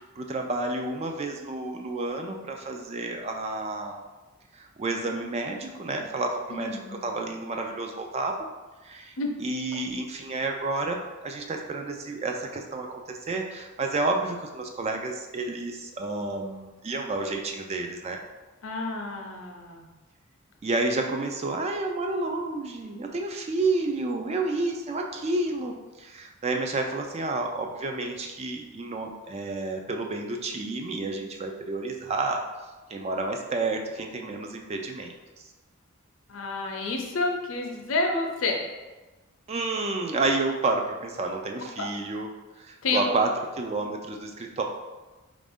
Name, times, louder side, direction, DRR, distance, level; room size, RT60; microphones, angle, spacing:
voice 1, 0.0-4.0 4.5-8.3 8.8-9.1 9.4-18.2 20.6-32.4 32.9-35.1 39.5-42.3 42.6-44.6, right 2 dB, 30° right, 3 dB, 0.3 m, -30 dB
voice 2, 6.5-7.0 9.2-9.3 18.6-19.9 36.3-38.6 41.8-41.9 42.8-43.1, left 3 dB, 65° left, 1 dB, 0.6 m, -29 dB
4.2 x 2.5 x 3.5 m, 1.2 s
head